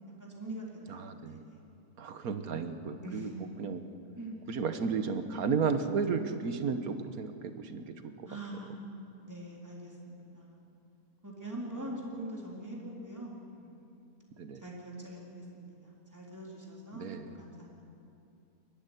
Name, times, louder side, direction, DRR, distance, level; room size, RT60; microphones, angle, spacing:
voice 1, 0.2-1.6 3.0-3.3 4.2-4.4 8.3-8.9 9.2-10.6 11.2-14.0 14.6-17.9, right 1 dB, 10° right, -4 dB, 3.9 m, -43 dB
voice 2, 0.9-1.4 2.0-3.3 3.6-3.8 4.5-8.3 14.4-14.6 16.9-17.3, right 5 dB, 70° right, 8 dB, 1.6 m, -33 dB
21.5 x 13.5 x 10.0 m, 2.6 s
omnidirectional pair, 1.6 m